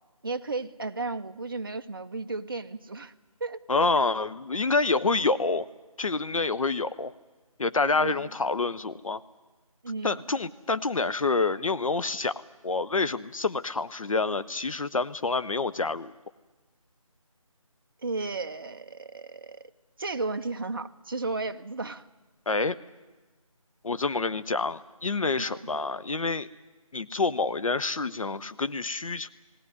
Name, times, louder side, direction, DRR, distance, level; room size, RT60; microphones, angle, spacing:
voice 1, 0.2-3.1 3.4-3.9 7.9-8.3 9.8-10.2 18.0-19.6 20.0-22.1 25.4-25.6, right 3 dB, 40° right, 8 dB, 0.8 m, -34 dB
voice 2, 3.7-5.7 6.0-7.1 7.6-9.2 10.0-16.1 22.5-22.7 23.8-26.5 26.9-29.3, left 3 dB, 65° left, 14 dB, 0.7 m, -27 dB
19.5 x 17.0 x 9.6 m, 1.2 s
figure-of-eight pair, 170°, 18 cm